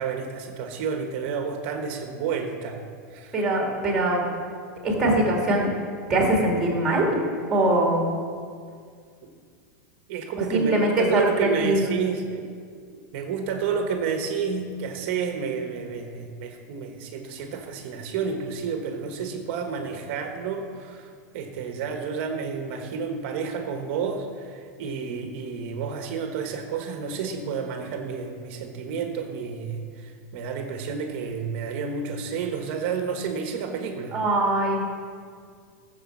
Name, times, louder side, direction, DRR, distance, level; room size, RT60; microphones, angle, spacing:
voice 1, 0.0-2.8 3.1-3.4 10.1-12.5 12.9-34.2, right 6 dB, 40° right, 5 dB, 1.3 m, -30 dB
voice 2, 3.3-4.2 4.8-5.7 6.1-7.1 7.5-8.1 10.5-11.3 11.6-11.9 34.1-34.8, right 1 dB, 5° right, -1 dB, 2.5 m, -22 dB
15.5 x 7.1 x 7.2 m, 2.1 s
supercardioid pair, 180°, 10 cm